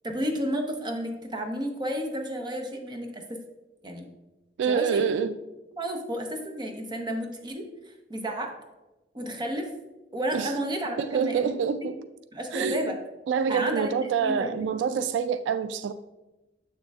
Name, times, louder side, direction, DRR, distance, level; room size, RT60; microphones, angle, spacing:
voice 1, 0.0-3.4 3.8-4.1 4.7-5.0 5.7-7.6 8.1-8.5 9.1-9.7 10.1-11.5 12.3-13.0 13.5-14.7, equal, 25° right, 0.8 m, -31 dB
voice 2, 4.6-5.4 10.3-10.5 11.0-12.0 12.5-13.0 13.3-15.9, right 6 dB, 85° right, 0.3 m, -26 dB
7.3 x 6.5 x 2.3 m
head